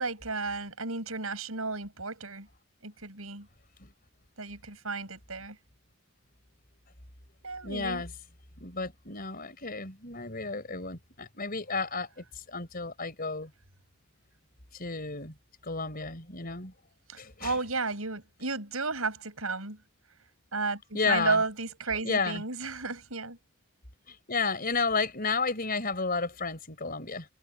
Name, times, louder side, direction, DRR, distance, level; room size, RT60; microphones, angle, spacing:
voice 1, 0.0-2.5 2.8-3.5 4.4-5.6 7.4-8.0 17.1-19.8 20.5-23.4, right 3 dB, 75° right, 7.2 m, -33 dB
voice 2, 7.6-8.1 8.6-13.5 14.7-15.3 15.6-16.7 17.2-17.6 20.9-21.4 22.0-22.4 24.1-27.3, left 4 dB, 40° left, 4.7 m, -32 dB
head